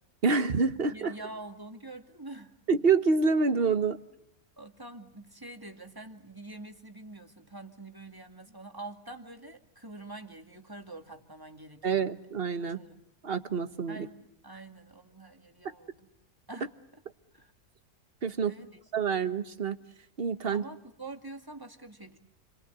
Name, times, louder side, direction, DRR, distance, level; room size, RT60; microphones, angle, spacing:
voice 1, 0.2-1.1 2.7-4.0 11.8-12.8 13.2-14.1 18.2-18.5 18.9-19.8 20.2-20.6, right 5 dB, 40° right, 1.4 m, -27 dB
voice 2, 0.9-2.6 4.6-12.1 12.7-13.0 13.9-16.1 16.5-17.0 17.3-17.5 18.4-18.8 19.1-19.2 20.5-22.2, right 2 dB, 15° right, 2.3 m, -46 dB
30.0 x 23.0 x 8.2 m
omnidirectional pair, 1.6 m